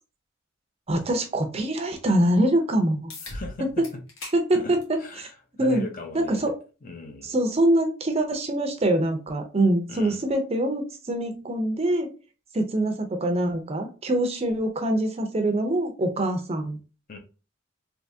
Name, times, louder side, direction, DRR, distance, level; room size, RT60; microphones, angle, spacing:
voice 1, 0.9-3.1 3.6-3.9 4.3-5.3 5.6-5.8 6.1-6.5 7.2-12.1 12.5-16.8, right 1 dB, 30° right, 6 dB, 0.5 m, -24 dB
sound 1, 3.1-3.4 3.8-4.4 4.8-5.0 6.0-6.1 11.0-11.1, left 3 dB, 80° left, 1.2 m, -40 dB
voice 2, 3.2-3.8 4.5-4.7 5.0-5.3 5.6-6.5 6.8-7.3 9.9-10.2 17.1-17.2, left 2 dB, 40° left, 4 dB, 0.6 m, -37 dB
3.4 x 2.8 x 2.7 m, 0.34 s
head